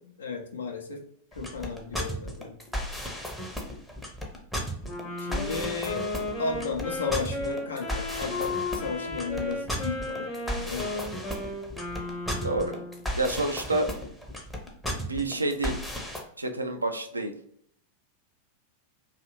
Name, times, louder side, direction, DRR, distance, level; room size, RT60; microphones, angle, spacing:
voice 1, 0.0-1.0 1.4-2.5 5.2-6.1 6.4-10.3 10.6-11.4, left 4 dB, 70° left, 2 dB, 0.5 m, -34 dB
sound 1, 1.3-16.2, equal, ahead, 0.6 m, -34 dB
Wind instrument woodwind instrument, 4.8-13.1, left 2 dB, 45° left, 1.0 m, -35 dB
voice 2, 12.4-12.8 13.2-13.9 14.9-15.8 16.4-17.3, right 2 dB, 80° right, 6 dB, 0.3 m, -28 dB
2.6 x 2.4 x 2.9 m, 0.67 s
figure-of-eight pair, 90°, 0 cm